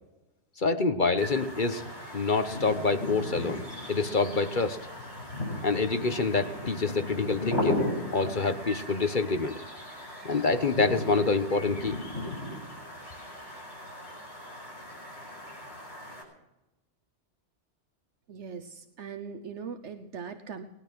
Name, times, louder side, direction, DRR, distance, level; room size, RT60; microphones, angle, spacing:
voice 1, 0.6-1.9 2.1-3.6 3.9-4.8 5.6-7.8 8.1-9.6 10.2-12.0, left 4 dB, 45° left, 9 dB, 1.2 m, -26 dB
sound 1, 1.2-16.2, left 1 dB, 65° left, 7.8 m, -36 dB
voice 2, 18.3-20.6, right 6 dB, 80° right, 7 dB, 1.3 m, -40 dB
20.0 x 11.5 x 6.2 m, 0.96 s
omnidirectional pair, 1.2 m